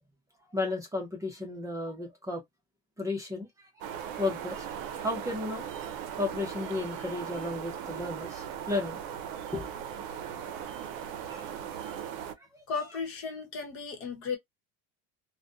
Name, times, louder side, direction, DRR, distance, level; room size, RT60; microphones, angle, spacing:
voice 1, 0.5-2.4 3.0-3.9 4.2-4.6 5.0-5.7 6.0-9.0 9.5-9.7 11.3-12.0 12.4-12.6, left 2 dB, 10° right, 0.7 m, -34 dB
sound 1, 3.8-12.3, right 9 dB, 70° right, 0.6 m, -38 dB
voice 2, 12.7-14.4, left 5 dB, 45° left, 1.0 m, -35 dB
2.4 x 2.2 x 2.6 m
cardioid pair, 140°, 29 cm